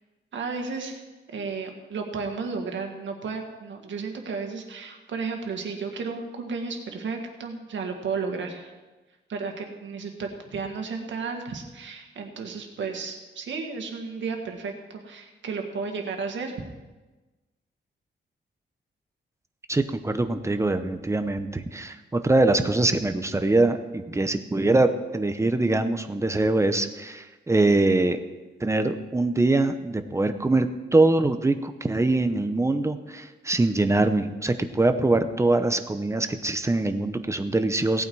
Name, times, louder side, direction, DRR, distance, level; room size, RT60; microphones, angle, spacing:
voice 1, 0.3-1.0 1.3-8.7 9.3-16.5, right 4 dB, 80° right, 3 dB, 1.9 m, -33 dB
voice 2, 19.7-28.2 28.6-38.0, right 2 dB, 15° right, 8 dB, 0.7 m, -23 dB
17.5 x 8.7 x 4.7 m, 1.2 s
wide cardioid pair, 150°, 19 cm